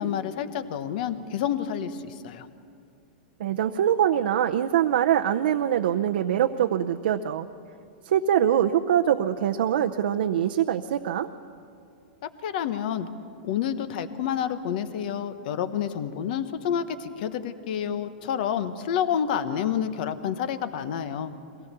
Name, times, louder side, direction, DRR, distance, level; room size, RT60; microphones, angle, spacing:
voice 1, 0.0-2.5 12.4-13.1 13.4-21.3, left 9 dB, 60° left, 11 dB, 1.2 m, -29 dB
voice 2, 3.4-7.5 8.0-11.3, right 10 dB, 75° right, 5 dB, 0.7 m, -23 dB
23.0 x 17.5 x 6.9 m, 2.5 s
hypercardioid pair, 135°, 5 cm